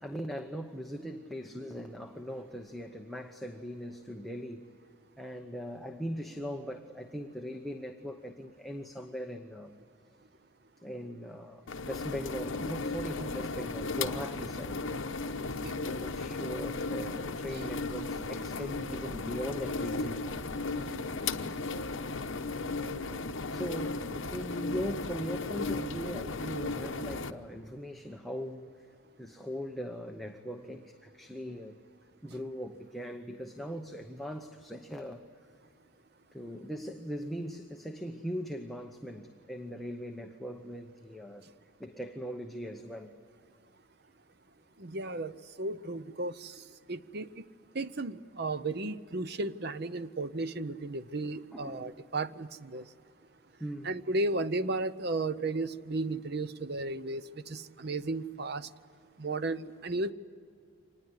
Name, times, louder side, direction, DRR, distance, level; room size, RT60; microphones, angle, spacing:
voice 1, 0.0-4.7 5.2-9.7 10.8-14.8 15.8-20.4 23.5-28.7 29.2-31.8 32.2-35.2 36.3-41.4 41.8-43.1 51.5-51.9 52.7-52.9 53.6-53.9, equal, ahead, 2 dB, 0.9 m, -40 dB
sound 1, 11.7-27.3, left 3 dB, 65° left, 1.0 m, -35 dB
voice 2, 44.8-46.6 46.9-47.4 47.7-52.8 53.8-58.7 59.2-60.1, right 2 dB, 50° right, 13 dB, 0.7 m, -34 dB
25.5 x 20.0 x 9.8 m, 2.4 s
head